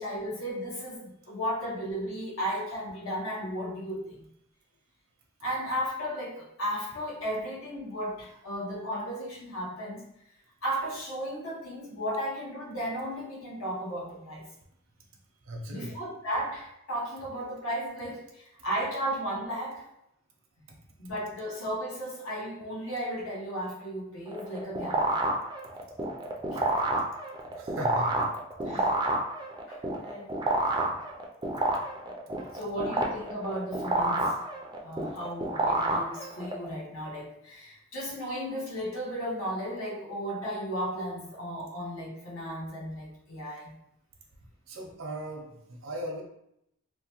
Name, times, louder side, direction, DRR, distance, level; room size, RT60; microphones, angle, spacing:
voice 1, 0.0-4.2 5.4-10.1 10.6-14.5 15.7-19.9 21.0-25.3 26.5-26.6 28.6-29.0 29.7-30.3 32.5-34.4 34.8-43.7, equal, 85° left, -4 dB, 1.0 m, -35 dB
voice 2, 15.4-16.0 20.7-20.8 26.6-26.7 27.5-28.3 44.7-46.2, equal, 75° right, 1 dB, 0.6 m, -38 dB
sound 1, 24.3-36.7, right 2 dB, 20° right, 0.3 m, -29 dB
2.8 x 2.1 x 2.9 m, 0.79 s
head